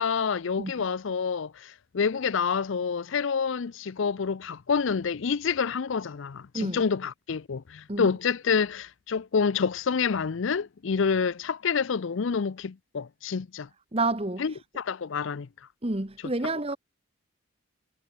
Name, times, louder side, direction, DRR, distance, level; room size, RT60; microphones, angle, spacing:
voice 1, 0.0-13.7 14.4-15.5, left 6 dB, 65° left, 0.5 m, -28 dB
voice 2, 13.9-14.4 15.8-16.8, right 2 dB, 30° right, 1.3 m, -29 dB
head